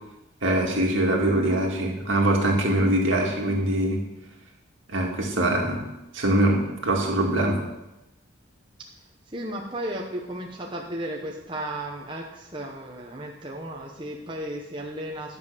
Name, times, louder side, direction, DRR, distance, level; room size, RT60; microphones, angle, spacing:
voice 1, 0.4-4.0 4.9-5.8 6.1-7.6, right 1 dB, 70° right, 0 dB, 2.0 m, -23 dB
voice 2, 9.3-15.4, right 1 dB, 25° right, -1 dB, 0.9 m, -34 dB
11.0 x 5.3 x 6.7 m, 0.95 s
head